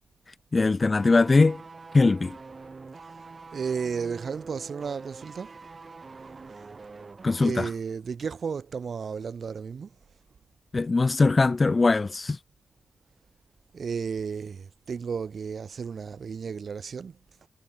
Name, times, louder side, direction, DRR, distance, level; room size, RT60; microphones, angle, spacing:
voice 1, 0.5-1.6 1.9-2.4 7.2-7.7 10.7-12.4, left 3 dB, 35° left, 1.3 m, -21 dB
sound 1, 0.9-7.6 7.9-8.0, right 4 dB, 40° right, 2.5 m, -45 dB
voice 2, 3.5-5.5 7.4-9.9 13.7-17.5, right 6 dB, 65° right, 4.8 m, -33 dB
wide cardioid pair, 100°, 0 cm